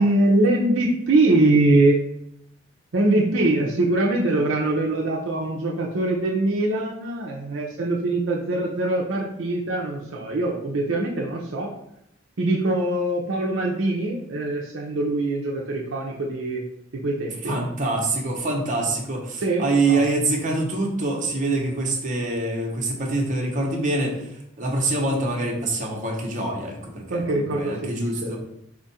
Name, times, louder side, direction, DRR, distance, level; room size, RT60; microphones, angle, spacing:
voice 1, 0.0-2.0 2.9-11.7 12.4-16.6 16.9-17.6 19.4-20.0 27.1-28.4, right 2 dB, 70° right, -1 dB, 0.6 m, -23 dB
voice 2, 17.4-24.3 24.6-28.4, right 2 dB, 40° right, -1 dB, 0.9 m, -25 dB
4.4 x 2.4 x 4.1 m, 0.78 s
head